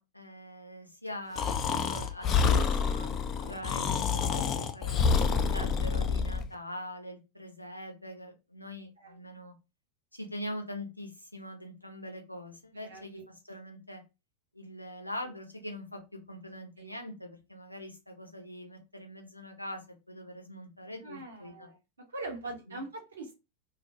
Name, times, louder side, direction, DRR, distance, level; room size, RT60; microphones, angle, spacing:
voice 1, 0.0-5.1 5.5-9.5 10.1-13.2 13.5-14.0 14.5-21.7 22.7-22.8, equal, 85° left, 4 dB, 0.6 m, -43 dB
Breathing, 1.4-6.5, left 6 dB, 30° left, 0.3 m, -28 dB
voice 2, 5.1-5.4 9.0-9.2 12.7-13.2 16.8-16.9 21.0-21.8 22.1-23.4, right 2 dB, 70° right, 2 dB, 0.8 m, -42 dB
2.4 x 2.1 x 2.6 m, 0.26 s
figure-of-eight pair, 90°, 0 cm